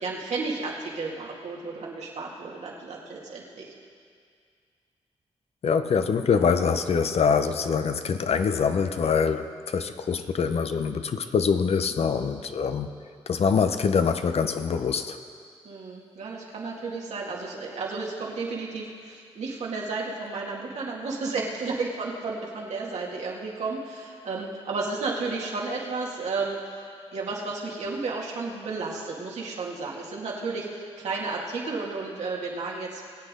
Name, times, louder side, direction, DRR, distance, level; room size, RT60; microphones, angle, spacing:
voice 1, 0.0-3.7 15.6-26.6 27.1-33.0, right 3 dB, 80° right, -3 dB, 2.1 m, -32 dB
voice 2, 5.6-12.9 13.3-15.2, left 6 dB, 65° left, 9 dB, 0.7 m, -24 dB
22.0 x 8.2 x 3.7 m, 2.2 s
cardioid pair, 65°, 11 cm